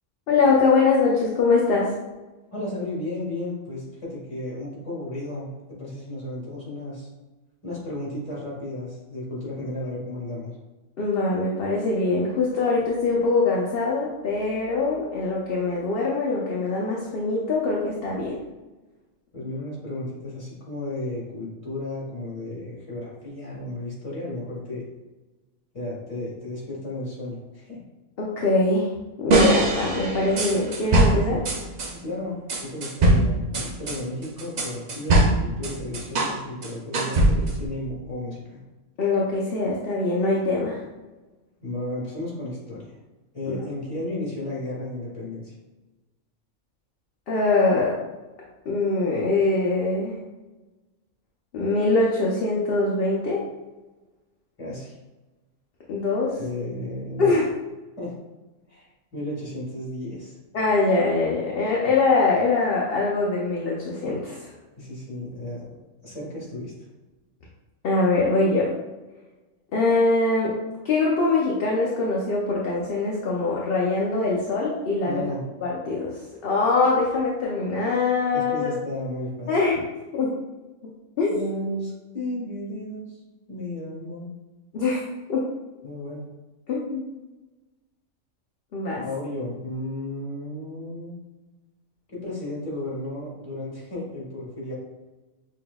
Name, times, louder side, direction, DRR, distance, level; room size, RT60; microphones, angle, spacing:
voice 1, 0.3-1.9 11.0-18.4 28.2-28.9 29.2-31.4 39.0-40.8 47.3-47.9 48.7-50.2 51.5-53.4 55.9-56.4 57.2-57.5 60.5-64.5 67.8-68.7 69.7-70.5 70.8-75.2 75.6-78.7 79.5-79.8 80.1-80.3 81.2-81.5 84.7-85.0 85.3-85.5 86.7-87.1 88.7-89.0, left 3 dB, 55° left, -4 dB, 0.7 m, -23 dB
voice 2, 2.5-7.1 7.6-10.6 19.3-24.8 25.7-27.8 31.9-38.6 41.6-43.0 43.3-45.5 54.6-55.0 56.4-57.3 58.0-58.2 58.7-60.4 64.8-65.7 66.0-66.7 75.0-75.4 78.3-79.5 81.3-83.2 83.5-84.3 85.8-86.3 89.0-91.1 92.1-94.7, left 1 dB, 25° left, -5 dB, 1.4 m, -33 dB
sound 1, 29.3-31.9 32.5-36.4 36.6-37.7, right 2 dB, 65° right, 0.4 m, -21 dB
5.8 x 2.8 x 2.3 m, 1.1 s
omnidirectional pair, 1.4 m